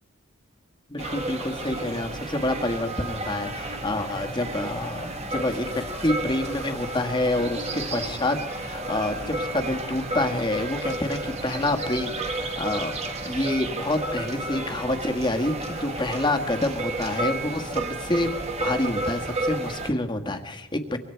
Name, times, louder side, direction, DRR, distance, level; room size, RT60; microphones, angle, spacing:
voice 1, 0.9-12.9 13.2-21.0, left 1 dB, 20° left, 5 dB, 1.6 m, -27 dB
sound 1, 1.0-19.9, right 2 dB, 30° right, 2.0 m, -32 dB
25.0 x 25.0 x 4.6 m, 1.0 s
head